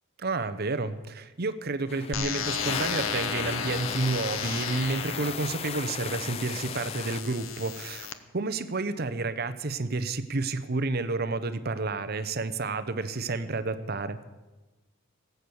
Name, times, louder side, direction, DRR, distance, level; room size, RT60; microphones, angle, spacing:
voice 1, 0.2-8.1 8.3-14.2, right 3 dB, 50° right, 12 dB, 0.8 m, -30 dB
sound 1, 1.9-7.2, left 6 dB, 30° left, 0.4 m, -37 dB
sound 2, 2.1-8.1, left 7 dB, 80° left, 0.9 m, -34 dB
18.5 x 8.1 x 7.0 m, 1.1 s
head